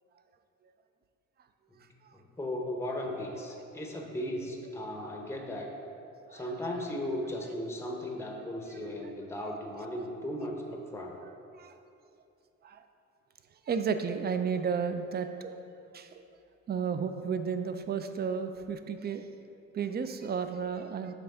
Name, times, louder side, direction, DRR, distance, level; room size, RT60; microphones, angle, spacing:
voice 1, 2.1-5.7 6.3-11.2, left 1 dB, 10° left, 1 dB, 0.7 m, -36 dB
voice 2, 13.7-15.5 15.9-16.2 16.7-19.3 19.7-21.1, right 6 dB, 35° right, 9 dB, 0.4 m, -32 dB
5.7 x 3.4 x 5.3 m, 2.6 s
cardioid pair, 90°, 30 cm